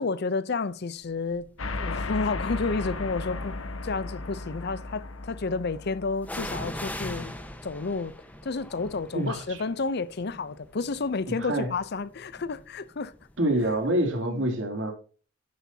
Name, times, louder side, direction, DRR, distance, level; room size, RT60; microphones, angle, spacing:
voice 1, 0.0-1.5 1.8-3.6 3.8-7.4 7.6-8.1 8.4-13.1 14.3-14.5, left 4 dB, 55° left, 0.6 m, -31 dB
sound 1, 1.3-1.6 2.4-3.3 6.2-13.9 14.1-14.2, left 1 dB, 10° left, 1.2 m, -41 dB
sound 2, 1.6-7.4, left 3 dB, 85° left, 1.3 m, -36 dB
voice 2, 9.1-9.6 11.3-11.7 13.4-14.9, right 1 dB, 65° right, 2.8 m, -26 dB
11.0 x 10.5 x 2.8 m
head